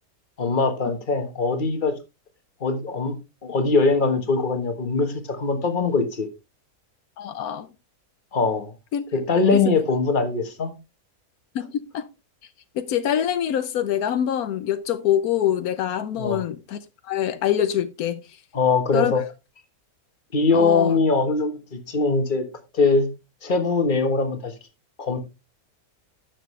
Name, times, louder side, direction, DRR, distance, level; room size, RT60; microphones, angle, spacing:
voice 1, 0.4-1.9 2.6-6.3 8.3-8.7 9.1-10.7 16.2-16.4 18.5-19.2 20.3-22.4 22.7-23.1 23.4-24.5 25.0-25.2, left 4 dB, 35° left, 1.5 m, -22 dB
voice 2, 7.2-7.7 8.9-9.0 9.5-9.8 11.5-12.1 12.7-18.2 18.9-19.1 20.5-21.0, left 10 dB, 80° left, 1.2 m, -25 dB
11.0 x 7.4 x 3.2 m
omnidirectional pair, 1.5 m